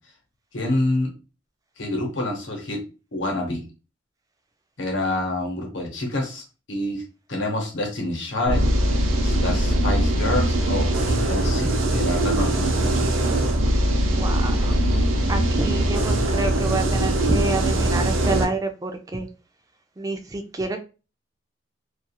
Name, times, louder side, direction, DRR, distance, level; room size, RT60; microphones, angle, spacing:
voice 1, 0.5-1.1 1.8-2.8 3.1-3.6 4.8-6.4 6.7-7.0 7.3-8.7 9.2-13.2, left 1 dB, 70° left, 1 dB, 0.9 m, -27 dB
sound 1, 8.5-18.5, right 1 dB, 80° right, 0.5 m, -21 dB
voice 2, 14.0-14.7 15.3-19.3 20.0-20.8, right 2 dB, 20° right, 6 dB, 0.3 m, -28 dB
2.3 x 2.3 x 2.8 m, 0.32 s
head